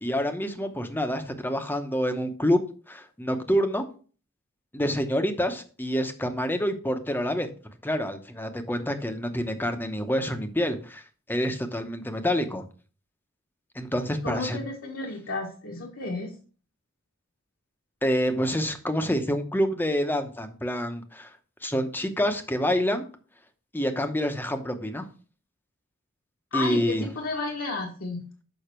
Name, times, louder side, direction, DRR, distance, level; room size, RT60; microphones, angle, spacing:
voice 1, 0.0-2.6 2.9-3.8 4.7-7.5 7.8-11.0 11.3-12.6 13.7-14.6 18.0-21.3 21.6-23.0 23.7-25.0 26.5-27.1, equal, 10° left, 7 dB, 0.8 m, -27 dB
voice 2, 14.2-16.3 26.5-28.3, left 3 dB, 70° left, -1 dB, 1.3 m, -32 dB
6.8 x 5.6 x 4.4 m, 0.39 s
head